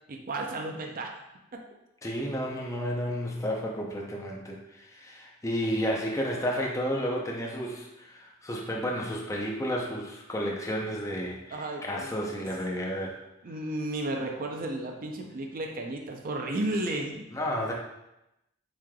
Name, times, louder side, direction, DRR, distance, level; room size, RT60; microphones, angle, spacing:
voice 1, 0.1-1.1 1.5-1.6 11.5-12.4 13.4-17.3, right 2 dB, 45° right, 2 dB, 0.5 m, -33 dB
voice 2, 2.0-13.2 17.3-17.7, equal, 15° left, -1 dB, 0.5 m, -32 dB
7.1 x 3.2 x 2.2 m, 0.90 s
head